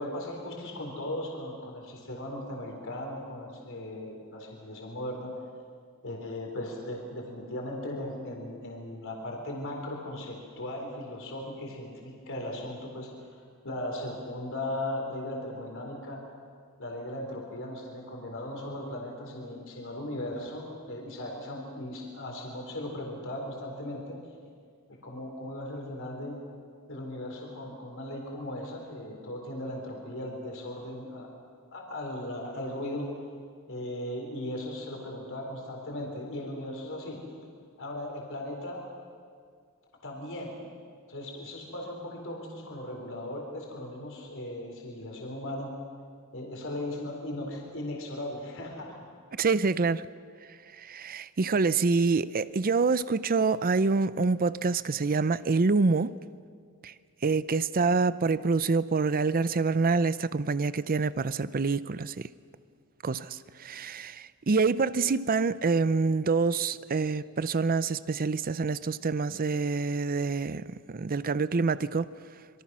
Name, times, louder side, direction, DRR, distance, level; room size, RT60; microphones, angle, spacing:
voice 1, 0.0-5.3 6.0-13.1 13.6-16.2 16.8-24.2 24.9-26.4 26.9-31.3 31.7-33.2 33.7-37.2 37.8-38.8 40.0-40.6 41.1-45.8 46.3-49.0, left 1 dB, 60° left, 4.1 m, -37 dB
voice 2, 49.4-50.1 50.8-56.1 56.8-56.9 57.2-62.3 63.0-72.1, right 4 dB, 40° right, 0.6 m, -26 dB
26.5 x 23.5 x 6.2 m
head